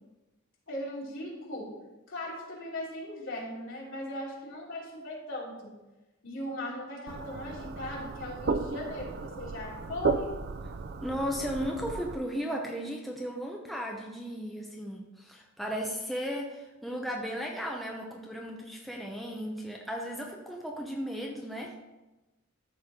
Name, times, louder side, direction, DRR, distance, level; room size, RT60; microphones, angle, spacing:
voice 1, 0.7-1.7 2.1-5.6 6.2-10.3, left 1 dB, 65° left, -5 dB, 3.1 m, -38 dB
sound 1, 7.1-12.2, right 4 dB, 50° right, 0.4 m, -34 dB
voice 2, 11.0-21.8, equal, ahead, -1 dB, 0.7 m, -35 dB
13.5 x 4.6 x 3.7 m, 1.1 s
head